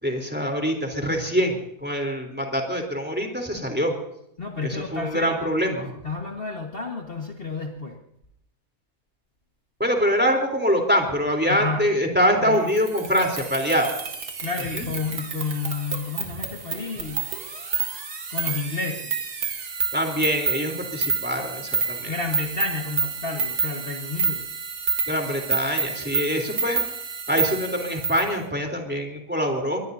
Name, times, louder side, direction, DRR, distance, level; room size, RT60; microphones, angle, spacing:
voice 1, 0.0-3.9 4.6-5.9 9.8-13.9 14.7-14.8 19.9-22.1 25.1-26.8 27.3-29.8, equal, 5° right, 2 dB, 3.5 m, -24 dB
voice 2, 4.4-5.4 6.0-8.0 11.5-11.9 12.4-12.7 14.4-17.3 18.3-19.2 22.1-24.5, left 4 dB, 35° left, 1 dB, 1.7 m, -31 dB
sound 1, 12.7-28.3, right 5 dB, 80° right, 2.6 m, -29 dB
24.5 x 21.0 x 2.7 m, 0.77 s
omnidirectional pair, 1.7 m